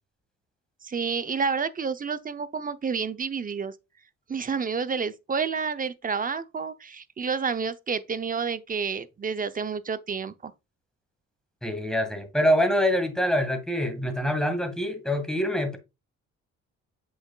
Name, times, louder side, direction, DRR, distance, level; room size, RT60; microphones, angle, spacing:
voice 1, 0.8-3.7 4.3-10.5, right 5 dB, 30° right, 0.7 m, -29 dB
voice 2, 11.6-15.8, equal, ahead, 2.1 m, -25 dB
7.7 x 6.2 x 2.4 m
cardioid pair, 90°, 30 cm